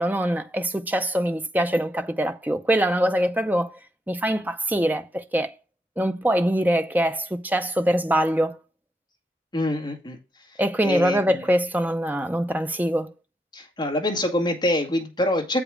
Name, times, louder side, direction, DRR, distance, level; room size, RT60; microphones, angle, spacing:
voice 1, 0.0-3.7 4.1-5.5 6.0-8.6 10.6-13.1, right 1 dB, 10° right, 0.6 m, -23 dB
voice 2, 9.5-11.4 13.5-15.6, left 1 dB, 25° left, 1.8 m, -26 dB
7.7 x 5.0 x 4.9 m
head